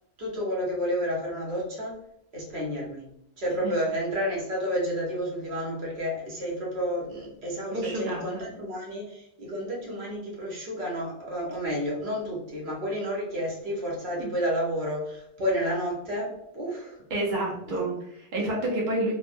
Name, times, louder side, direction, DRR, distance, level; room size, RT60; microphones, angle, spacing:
voice 1, 0.2-2.0 2.3-3.1 3.4-17.0 17.7-17.9, equal, 70° right, -4 dB, 1.2 m, -31 dB
voice 2, 7.7-8.4 14.2-14.3 17.1-19.1, right 1 dB, 55° right, -3 dB, 0.7 m, -29 dB
3.2 x 2.1 x 2.5 m, 0.77 s
omnidirectional pair, 1.1 m